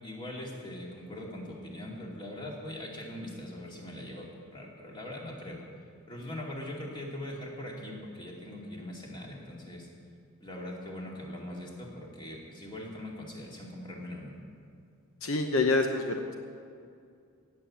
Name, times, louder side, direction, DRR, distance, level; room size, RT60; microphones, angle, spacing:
voice 1, 0.0-5.6 6.1-9.9 10.4-14.3, left 1 dB, 20° left, -2 dB, 2.4 m, -41 dB
voice 2, 15.2-16.3, left 3 dB, 65° left, 4 dB, 0.9 m, -27 dB
16.5 x 7.4 x 8.6 m, 2.4 s
head